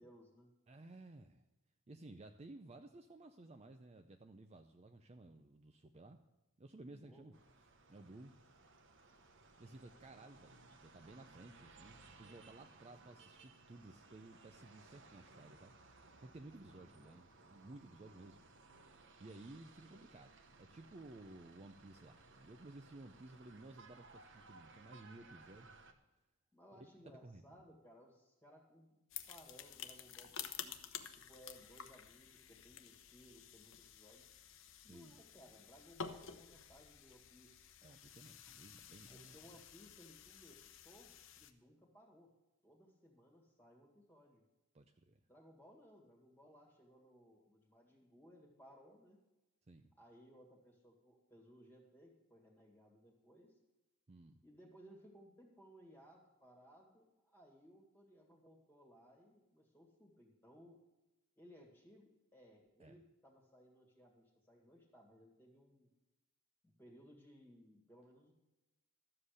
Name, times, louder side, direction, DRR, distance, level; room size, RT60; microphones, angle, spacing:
voice 1, 0.0-0.5 6.9-7.3 16.8-17.2 26.5-29.0 29.3-30.8 31.1-34.3 34.8-37.7 39.1-42.3 42.6-44.4 45.3-49.2 50.0-53.5 54.4-60.8 61.4-65.9 66.6-68.3, equal, 10° left, 1 dB, 1.9 m, -62 dB
voice 2, 0.7-1.4 1.9-6.2 6.6-7.3 7.9-8.3 9.6-18.4 19.2-25.8 26.7-27.6 34.8-35.1 37.8-39.6 44.7-45.2 49.7-49.9 54.1-54.4 62.8-63.0, right 2 dB, 30° right, 6 dB, 0.5 m, -56 dB
sound 1, 7.3-25.9, right 3 dB, 55° right, 1.1 m, -62 dB
sound 2, 29.1-41.5, left 8 dB, 60° left, 0.8 m, -52 dB
13.0 x 7.6 x 6.5 m, 1.0 s
head